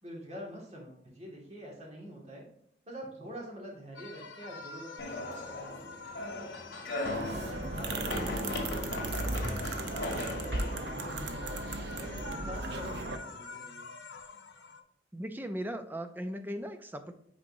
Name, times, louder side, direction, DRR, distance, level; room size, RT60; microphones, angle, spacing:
voice 1, 0.0-2.5 2.8-5.9 7.2-11.6 12.0-13.8, equal, 35° right, -2 dB, 1.9 m, -46 dB
sound 1, 3.9-14.8, left 4 dB, 85° left, 0.7 m, -47 dB
sound 2, 5.0-12.1, left 1 dB, 60° left, 2.3 m, -38 dB
sound 3, 7.1-13.2, right 2 dB, 65° right, 0.6 m, -36 dB
voice 2, 15.1-17.1, equal, 10° right, 8 dB, 0.4 m, -38 dB
8.4 x 4.3 x 2.6 m, 0.70 s
head